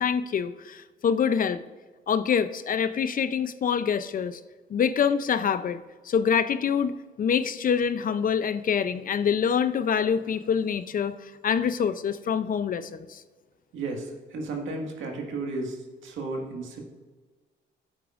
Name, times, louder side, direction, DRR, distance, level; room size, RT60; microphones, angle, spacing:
voice 1, 0.0-1.6 2.1-4.4 4.7-5.8 6.1-13.2, left 7 dB, 45° left, 13 dB, 0.5 m, -25 dB
voice 2, 13.7-16.8, right 3 dB, 80° right, 1 dB, 1.8 m, -34 dB
11.5 x 8.7 x 2.5 m, 1.4 s
cardioid pair, 90°, 20 cm